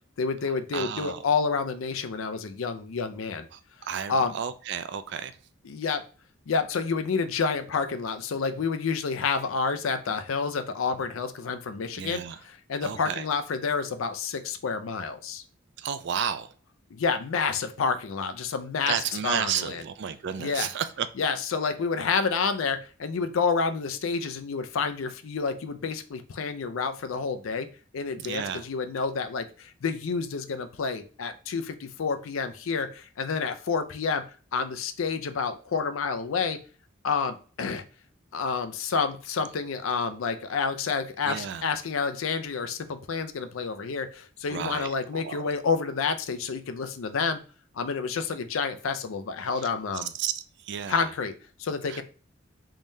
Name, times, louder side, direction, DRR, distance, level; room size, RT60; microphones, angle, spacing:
voice 1, 0.2-3.5 4.1-4.4 5.6-6.0 6.5-15.4 16.9-18.9 19.2-19.8 20.4-20.7 21.2-27.7 27.9-34.2 34.5-36.6 37.0-37.8 38.3-47.4 47.8-50.1 50.9-51.3 51.6-52.0, left 5 dB, 80° left, 0.5 m, -29 dB
voice 2, 0.7-1.2 3.5-5.3 11.9-12.4 12.8-13.3 15.8-16.5 18.9-21.1 28.2-28.6 41.3-41.6 44.5-45.4 50.1-51.1 51.9-52.0, right 8 dB, 55° right, 0.3 m, -32 dB
3.7 x 3.1 x 2.7 m
head